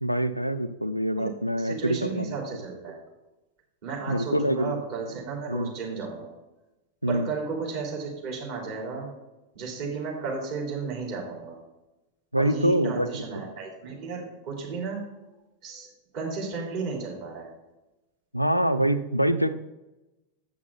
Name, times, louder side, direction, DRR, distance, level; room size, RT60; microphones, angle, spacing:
voice 1, 0.0-2.4 4.1-4.8 5.5-5.7 7.0-7.3 12.3-13.5 18.3-19.5, right 1 dB, 90° left, 11 dB, 0.4 m, -25 dB
voice 2, 1.5-3.0 3.8-6.3 7.1-9.1 9.5-11.6 12.4-15.0 15.6-15.9 16.1-17.5, right 4 dB, 45° right, -2 dB, 3.3 m, -33 dB
8.6 x 6.1 x 5.7 m, 1.0 s
figure-of-eight pair, 90°, 0 cm